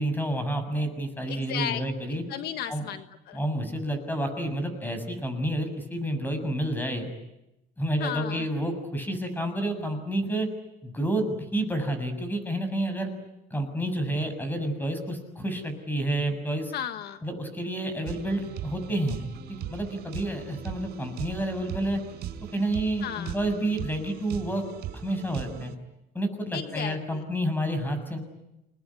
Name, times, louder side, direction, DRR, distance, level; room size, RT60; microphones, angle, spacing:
voice 1, 0.0-2.2 2.7-2.9 3.3-7.1 7.8-10.5 10.8-13.1 13.5-16.7 17.2-19.2 19.5-22.0 22.5-24.6 25.0-25.7 26.1-28.2, right 1 dB, 10° left, 8 dB, 7.0 m, -29 dB
voice 2, 1.3-1.8 2.3-3.4 8.0-8.5 16.7-17.2 23.0-23.3 26.5-27.2, left 10 dB, 75° left, 9 dB, 1.5 m, -34 dB
sound 1, 18.0-25.7, right 10 dB, 75° right, 4.8 m, -39 dB
29.0 x 20.5 x 9.9 m, 0.90 s
cardioid pair, 110°, 17 cm